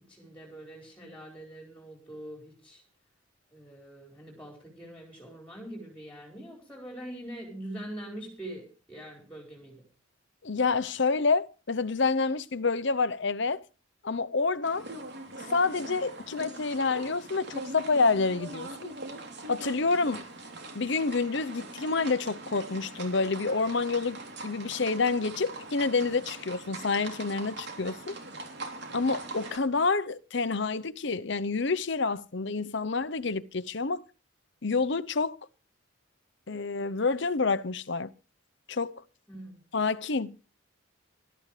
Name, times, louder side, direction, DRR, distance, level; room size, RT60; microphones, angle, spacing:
voice 1, 0.0-2.8 3.5-9.8 39.3-39.6, right 1 dB, 5° left, 4.7 m, -43 dB
voice 2, 10.4-13.6 14.0-14.9 15.5-18.9 19.5-20.2 20.7-28.2 28.9-34.0 34.6-35.4 36.5-38.1 38.7-39.0 39.7-40.4, left 4 dB, 55° left, 0.8 m, -28 dB
sound 1, 14.6-29.6, right 2 dB, 50° right, 3.4 m, -42 dB
20.5 x 13.0 x 3.3 m
head